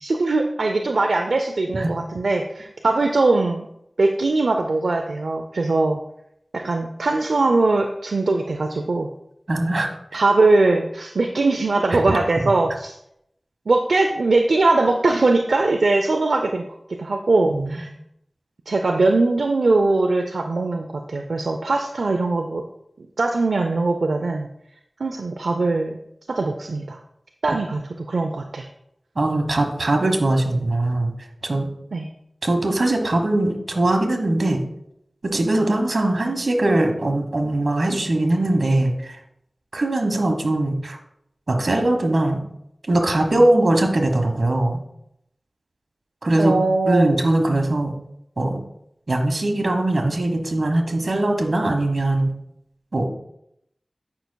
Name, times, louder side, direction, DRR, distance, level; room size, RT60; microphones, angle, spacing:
voice 1, 0.0-3.7 4.0-6.0 6.5-9.1 10.1-12.9 13.7-16.6 17.0-17.9 18.7-22.6 23.0-24.5 25.0-26.0 26.3-27.0 27.4-28.7 31.9-32.1 46.4-47.2, right 3 dB, 90° right, 4 dB, 0.4 m, -21 dB
voice 2, 9.5-10.2 11.9-12.0 17.5-17.8 27.5-27.6 29.1-31.1 31.4-31.7 32.4-34.6 35.2-39.2 39.7-41.0 41.5-42.4 42.9-44.8 46.2-46.5 46.9-47.9 48.4-48.6 49.1-52.3 52.9-53.1, right 1 dB, 70° right, 4 dB, 1.2 m, -21 dB
9.2 x 5.7 x 2.2 m, 0.78 s
wide cardioid pair, 40°, 0 cm